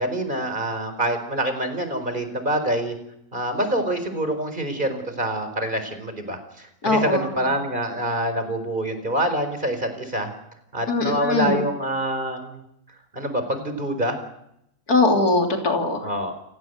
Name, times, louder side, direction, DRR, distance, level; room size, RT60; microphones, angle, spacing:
voice 1, 0.0-2.9 3.3-10.3 10.7-12.6 13.1-14.2 16.0-16.3, right 1 dB, 30° right, 8 dB, 4.7 m, -26 dB
voice 2, 6.8-7.3 10.9-11.7 14.9-16.0, left 3 dB, 80° left, 3 dB, 3.7 m, -21 dB
30.0 x 16.5 x 8.1 m, 0.78 s
omnidirectional pair, 1.6 m